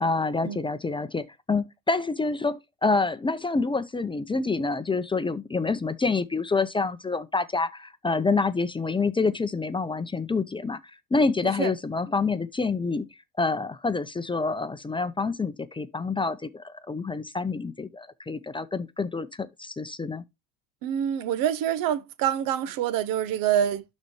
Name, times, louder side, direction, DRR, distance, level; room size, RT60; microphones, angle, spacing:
voice 1, 0.0-10.8 11.1-13.1 13.4-20.2, left 3 dB, 15° left, 0.6 m, -27 dB
voice 2, 11.4-11.7 20.8-23.8, right 10 dB, 70° right, 1.0 m, -26 dB
11.5 x 4.2 x 3.1 m
supercardioid pair, 95°, 35 cm